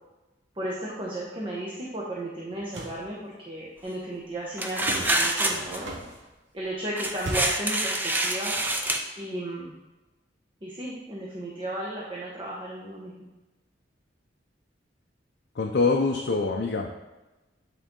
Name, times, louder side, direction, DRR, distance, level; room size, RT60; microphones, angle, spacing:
voice 1, 0.5-5.9 6.5-8.5 9.2-9.7 10.6-13.3, right 1 dB, 30° right, -4 dB, 0.9 m, -34 dB
sound 1, 2.5-3.0 4.8-6.3 7.2-7.7, right 1 dB, 80° right, 1.1 m, -37 dB
sound 2, 4.6-5.8 7.0-9.0, right 1 dB, 10° right, 0.5 m, -26 dB
voice 2, 15.6-17.0, left 3 dB, 60° left, 1 dB, 0.5 m, -25 dB
8.6 x 3.9 x 3.7 m, 1.1 s
head